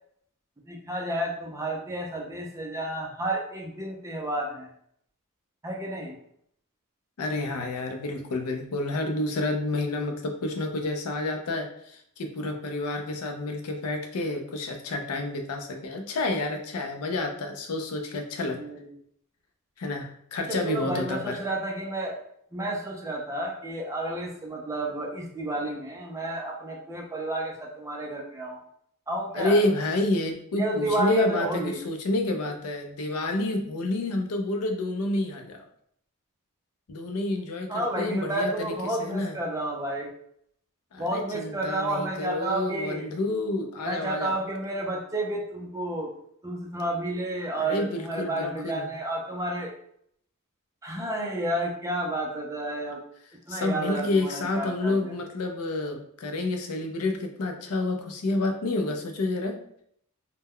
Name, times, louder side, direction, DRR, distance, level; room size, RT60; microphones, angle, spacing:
voice 1, 0.7-4.7 5.6-6.1 18.5-18.9 20.5-22.2 22.5-28.6 29.1-29.6 30.5-31.8 37.7-40.1 41.0-43.1 43.9-46.1 46.4-49.7 50.8-53.0 53.5-55.0, right 1 dB, 15° right, -1 dB, 0.4 m, -31 dB
voice 2, 7.2-18.6 19.8-21.4 29.3-35.6 36.9-39.4 40.9-44.4 47.5-48.9 53.5-59.6, left 2 dB, 80° left, 4 dB, 0.5 m, -29 dB
2.1 x 2.1 x 3.5 m, 0.69 s
head